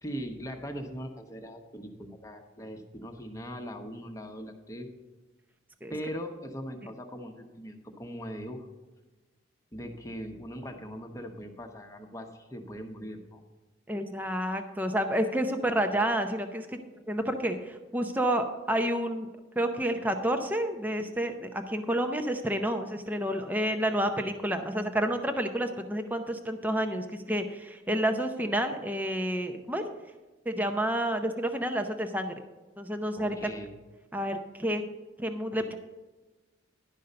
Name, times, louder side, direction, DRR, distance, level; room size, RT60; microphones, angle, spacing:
voice 1, 0.0-4.9 5.9-8.7 9.7-13.4 33.2-33.7, equal, 15° left, 4 dB, 1.0 m, -40 dB
voice 2, 13.9-16.8 17.1-19.3 19.6-29.9 30.5-32.4 32.8-33.4 34.1-34.8 35.2-35.8, right 1 dB, 10° right, 6 dB, 0.6 m, -29 dB
11.5 x 5.5 x 6.6 m, 1.2 s
head